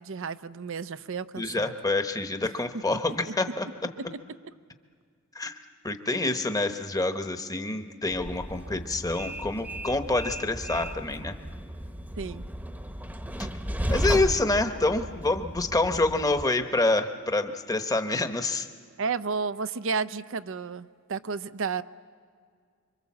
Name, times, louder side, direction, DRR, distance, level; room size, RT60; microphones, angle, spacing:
voice 1, 0.0-1.7 2.9-3.0 4.0-4.1 12.2-12.5 19.0-21.8, right 5 dB, 65° right, 12 dB, 0.6 m, -32 dB
voice 2, 1.4-3.7 5.3-5.6 5.8-11.3 13.9-18.7, left 2 dB, 15° left, 7 dB, 1.1 m, -27 dB
Train, 8.1-16.4, equal, 10° right, 1.0 m, -34 dB
26.5 x 24.5 x 7.4 m, 2.1 s
head